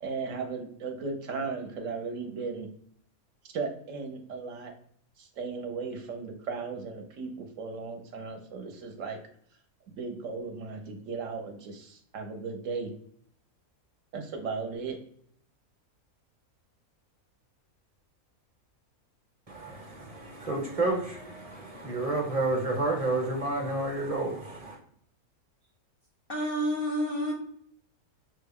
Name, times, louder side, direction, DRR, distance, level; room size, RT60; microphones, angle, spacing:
voice 1, 0.0-2.7 3.5-4.7 5.2-9.2 10.0-12.9 14.1-15.0, right 4 dB, 65° right, 1.0 m, -36 dB
voice 2, 19.5-24.8, right 2 dB, 30° right, 0.8 m, -30 dB
voice 3, 26.3-27.3, equal, 55° left, 0.6 m, -29 dB
5.8 x 2.2 x 3.4 m
omnidirectional pair, 1.5 m